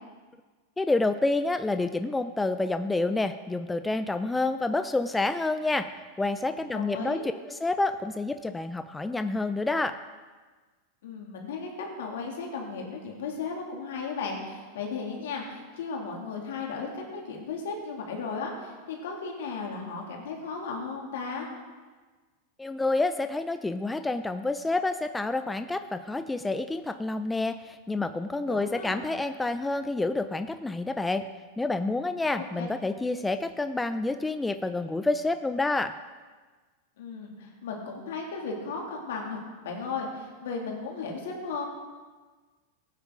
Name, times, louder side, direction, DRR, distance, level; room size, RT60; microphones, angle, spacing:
voice 1, 0.8-5.9 6.2-7.2 7.5-10.0 22.6-31.2 31.6-35.9, left 2 dB, 10° left, 10 dB, 0.4 m, -28 dB
voice 2, 6.7-7.3 11.0-11.7 12.0-21.5 28.5-29.0 32.3-32.7 37.0-39.4 39.6-41.7, left 4 dB, 75° left, 0 dB, 2.6 m, -35 dB
15.5 x 9.0 x 3.8 m, 1.4 s
hypercardioid pair, 110°, 0 cm